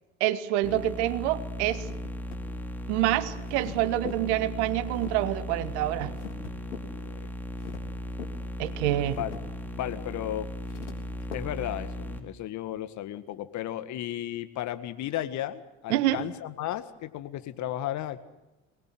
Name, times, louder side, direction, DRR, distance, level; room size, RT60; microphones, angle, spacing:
voice 1, 0.2-1.9 2.9-6.2 8.6-9.2 15.9-16.2, right 14 dB, 65° right, 1.5 m, -27 dB
sound 1, 0.6-12.2, equal, 5° left, 4.1 m, -37 dB
sound 2, 0.9-11.4, left 6 dB, 80° left, 3.5 m, -46 dB
voice 2, 6.9-7.3 9.2-9.3 9.7-10.5 11.3-18.2, left 12 dB, 50° left, 1.8 m, -34 dB
23.5 x 20.5 x 7.8 m
hypercardioid pair, 65°, 36 cm